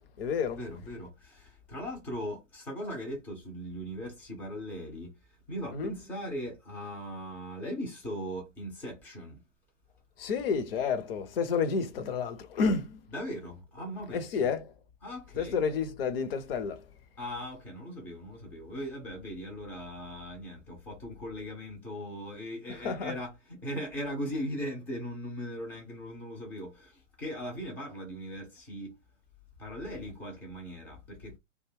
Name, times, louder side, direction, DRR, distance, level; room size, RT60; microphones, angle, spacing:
voice 1, 0.0-0.6 5.7-5.9 10.2-13.0 14.1-14.7 15.4-16.8 22.8-23.1, left 5 dB, 50° left, 0.6 m, -30 dB
voice 2, 0.5-9.4 13.1-14.5 15.0-15.6 17.2-29.0 29.6-31.4, equal, 5° left, 0.3 m, -39 dB
2.5 x 2.2 x 3.3 m
figure-of-eight pair, 115°, 38 cm